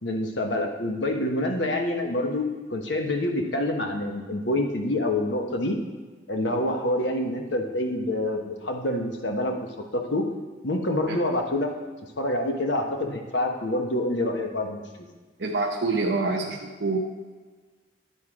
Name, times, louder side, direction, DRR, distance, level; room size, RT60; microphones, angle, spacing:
voice 1, 0.0-2.4 2.7-5.8 6.3-9.5 9.9-10.2 10.6-11.7 12.2-14.8, left 1 dB, 75° left, 3 dB, 1.1 m, -26 dB
voice 2, 15.4-17.0, right 3 dB, 70° right, 0 dB, 0.7 m, -26 dB
11.0 x 4.5 x 4.9 m, 1.4 s
head